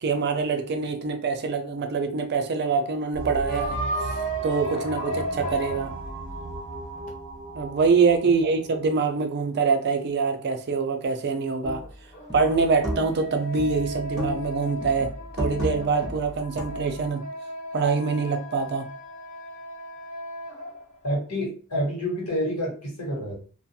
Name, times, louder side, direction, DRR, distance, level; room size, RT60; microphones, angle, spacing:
voice 1, 0.0-3.8 4.4-5.9 7.5-11.8 12.3-17.2 17.7-18.9, right 4 dB, 50° right, 6 dB, 0.4 m, -24 dB
sound 1, 3.1-9.6, right 2 dB, 85° right, 0.8 m, -37 dB
sound 2, 3.5-7.1 11.8-21.0, right 1 dB, 35° left, 0.6 m, -35 dB
sound 3, 11.6-11.9 12.3-13.3 13.6-14.5 14.8-17.0, equal, ahead, 0.8 m, -33 dB
voice 2, 21.0-23.3, equal, 90° left, -3 dB, 1.4 m, -28 dB
2.4 x 2.3 x 2.7 m, 0.40 s
head